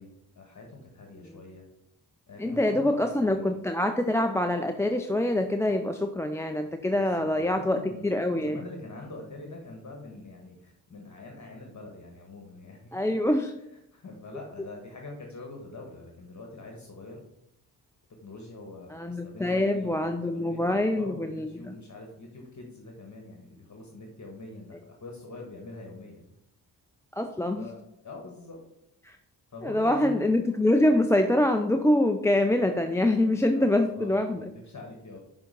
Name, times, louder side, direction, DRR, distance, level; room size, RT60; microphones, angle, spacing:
voice 1, 0.0-1.6 2.3-3.4 6.8-8.1 8.4-13.0 13.9-17.2 18.2-20.0 20.3-26.3 27.5-28.6 29.5-30.3 33.5-35.2, left 2 dB, 45° left, 1 dB, 1.4 m, -44 dB
voice 2, 2.4-8.6 12.9-13.5 18.9-21.7 27.1-27.7 29.0-29.2 29.6-34.5, left 1 dB, 5° left, 5 dB, 0.5 m, -25 dB
6.2 x 3.9 x 5.1 m, 0.79 s
cardioid pair, 50°, 41 cm